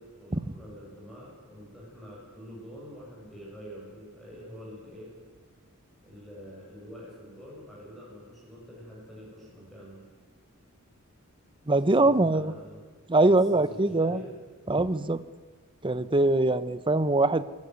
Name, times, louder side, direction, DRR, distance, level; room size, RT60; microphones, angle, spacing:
voice 1, 0.0-5.1 6.0-10.0 12.0-12.8 13.2-14.3, equal, ahead, -5 dB, 7.9 m, -46 dB
voice 2, 11.7-12.5 13.1-14.2 14.7-15.2 15.8-17.4, right 2 dB, 25° right, 14 dB, 0.8 m, -23 dB
22.5 x 17.5 x 9.6 m, 1.5 s
head